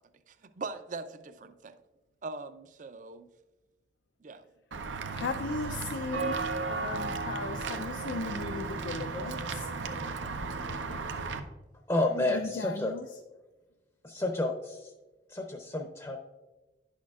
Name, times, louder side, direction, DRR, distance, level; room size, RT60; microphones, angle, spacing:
voice 1, 0.3-1.8 2.2-3.3 4.2-4.4, right 3 dB, 45° right, 11 dB, 0.5 m, -41 dB
Walk footsteps / Bell, 4.7-11.4, right 4 dB, 85° right, 0.6 m, -35 dB
voice 2, 5.1-6.4 6.7-9.7 12.1-13.1, left 3 dB, 80° left, 6 dB, 0.5 m, -37 dB
voice 3, 11.9-12.9 14.0-14.9 15.3-16.2, left 2 dB, 20° left, 3 dB, 0.6 m, -30 dB
10.5 x 6.4 x 2.4 m, 1.1 s
head